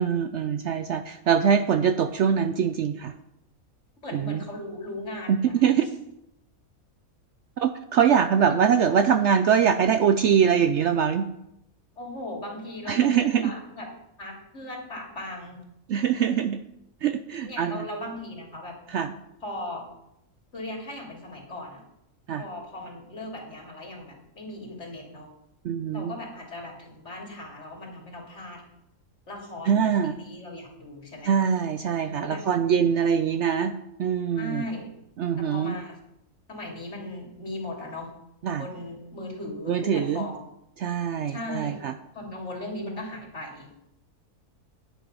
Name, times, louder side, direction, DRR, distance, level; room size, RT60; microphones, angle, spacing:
voice 1, 0.0-3.1 4.1-4.4 5.3-5.9 7.6-11.3 12.9-13.5 15.9-16.6 17.0-17.9 18.9-19.1 22.3-22.4 25.6-26.1 29.7-30.1 31.3-33.7 34.0-34.6 35.2-35.8 38.4-38.7 39.7-40.3 40.8-41.9, right 7 dB, 65° right, 9 dB, 0.7 m, -23 dB
voice 2, 4.0-5.6 12.0-13.9 14.2-15.6 17.4-18.8 19.4-19.8 20.5-21.8 22.4-25.3 25.9-28.6 29.3-31.3 32.2-33.0 34.3-34.9 35.4-36.0 36.5-38.1 38.5-40.4 41.3-41.8 42.1-43.7, left 1 dB, 50° left, -1 dB, 3.0 m, -38 dB
10.0 x 9.6 x 5.3 m, 0.84 s
omnidirectional pair, 1.5 m